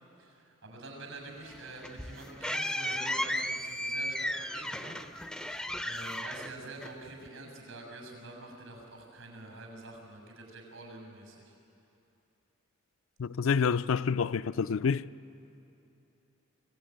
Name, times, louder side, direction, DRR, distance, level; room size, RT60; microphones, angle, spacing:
voice 1, 0.2-11.5, right 2 dB, 85° right, 6.8 m, -47 dB
sound 1, 1.5-7.3, left 1 dB, 5° left, 0.4 m, -35 dB
voice 2, 13.2-15.0, left 6 dB, 75° left, 0.4 m, -28 dB
25.5 x 16.5 x 9.3 m
head